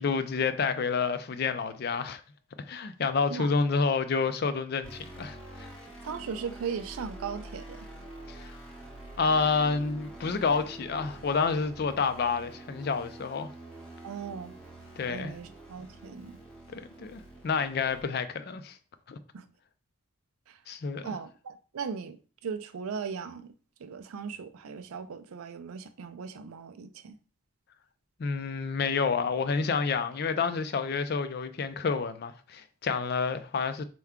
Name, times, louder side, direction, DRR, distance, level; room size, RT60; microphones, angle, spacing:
voice 1, 0.0-2.2 2.7-5.7 8.3-8.6 9.2-13.5 15.0-15.3 16.7-18.8 19.1-19.2 20.7-21.2 28.2-33.8, left 5 dB, 50° left, 0.4 m, -29 dB
sound 1, 4.8-18.0, right 1 dB, 5° left, 0.8 m, -46 dB
voice 2, 6.0-7.9 14.0-14.5 15.1-16.4 19.3-19.5 20.5-20.6 21.0-22.2 22.4-23.5 23.8-27.2, right 6 dB, 90° right, 0.4 m, -38 dB
4.5 x 2.2 x 3.6 m
head